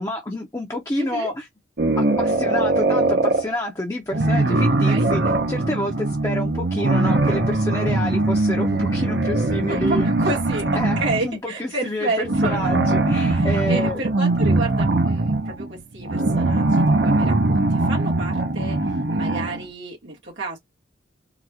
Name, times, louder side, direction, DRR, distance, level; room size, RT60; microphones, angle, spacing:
voice 1, 0.0-1.5 2.0-10.1 10.7-14.0, left 1 dB, 20° left, 0.6 m, -28 dB
voice 2, 1.0-1.3 4.3-4.5 4.9-5.1 9.6-12.7 13.3-18.8 19.1-20.6, right 2 dB, 80° right, 1.9 m, -30 dB
sound 1, 1.8-3.5 4.1-11.3 12.2-19.7, right 2 dB, 65° right, 0.7 m, -21 dB
3.9 x 2.4 x 2.8 m
head